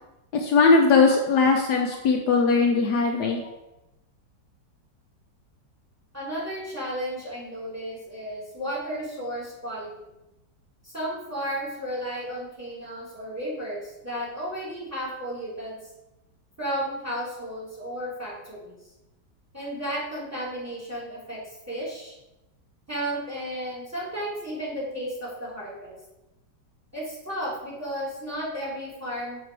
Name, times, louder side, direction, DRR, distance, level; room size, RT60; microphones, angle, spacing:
voice 1, 0.4-3.4, left 4 dB, 70° left, 2 dB, 1.2 m, -20 dB
voice 2, 6.1-9.9 10.8-15.8 16.6-18.7 19.5-21.4 21.7-22.1 22.9-25.9 26.9-29.4, equal, 10° right, -6 dB, 2.8 m, -33 dB
6.3 x 5.0 x 4.7 m, 0.94 s
omnidirectional pair, 1.9 m